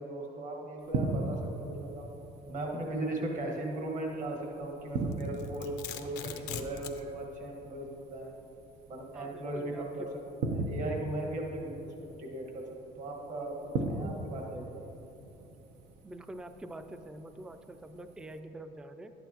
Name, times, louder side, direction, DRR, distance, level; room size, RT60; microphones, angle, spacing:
voice 1, 0.0-2.1 2.5-8.3 8.9-10.0 10.4-14.9, right 1 dB, 50° right, 0 dB, 1.5 m, -38 dB
sound 1, 0.8-18.4, right 3 dB, 80° right, 0.8 m, -40 dB
Domestic sounds home sounds, 5.1-7.0, left 9 dB, 85° left, 0.6 m, -41 dB
voice 2, 9.1-10.1 13.8-14.2 16.0-19.1, right 1 dB, 5° right, 8 dB, 0.4 m, -46 dB
11.0 x 9.2 x 2.9 m, 2.9 s
cardioid pair, 110°, 17 cm